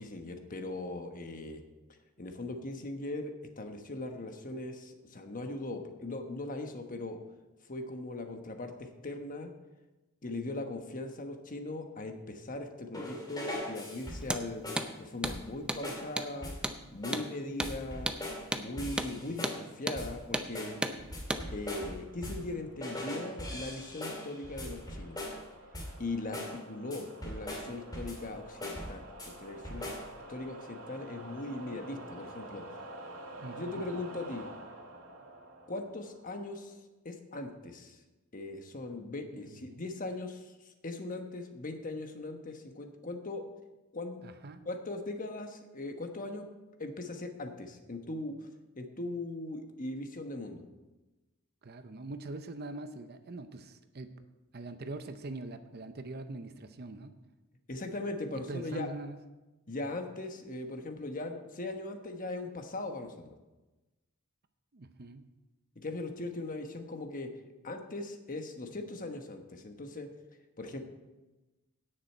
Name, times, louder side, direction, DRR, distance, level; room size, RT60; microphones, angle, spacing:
voice 1, 0.0-1.6 2.2-7.2 7.7-9.5 10.2-14.6 15.0-16.5 16.9-18.1 18.5-20.8 21.5-25.2 26.0-29.9 30.3-32.6 33.6-34.5 35.7-36.7 37.0-38.0 38.3-43.4 43.9-44.2 44.6-46.4 46.8-48.5 48.7-50.6 57.7-58.9 59.7-63.4 65.7-67.3 67.6-70.1 70.6-70.8, left 2 dB, 40° left, 5 dB, 1.2 m, -39 dB
sound 1, 12.9-14.4 14.6-14.9 15.2-15.6 15.8-16.1 16.4-16.7 17.0-17.3 17.6-18.5 18.8-19.7 20.0-20.2 20.6-22.5 22.8-25.5 25.7-26.0 26.3-26.6 26.9-28.3 28.6-29.3 29.6-30.1, left 1 dB, 20° left, 2.5 m, -40 dB
Hammer, 14.2-14.4 14.8-14.9 15.2-15.4 15.7-15.8 16.2-16.3 16.6-16.8 17.1-17.3 17.6-17.7 18.1-18.2 18.5-18.7 19.0-19.1 19.4-19.6 19.9-20.0 20.3-20.5 20.8-21.0 21.3-21.4, right 1 dB, 5° right, 0.6 m, -33 dB
sound 2, 20.3-36.7, right 2 dB, 80° right, 1.8 m, -50 dB
voice 2, 33.4-33.8 39.3-39.8 44.2-44.7 51.6-54.1 54.5-57.2 58.3-59.2 64.7-65.3, right 2 dB, 50° right, 9 dB, 0.7 m, -43 dB
17.0 x 6.6 x 4.5 m, 1.1 s
head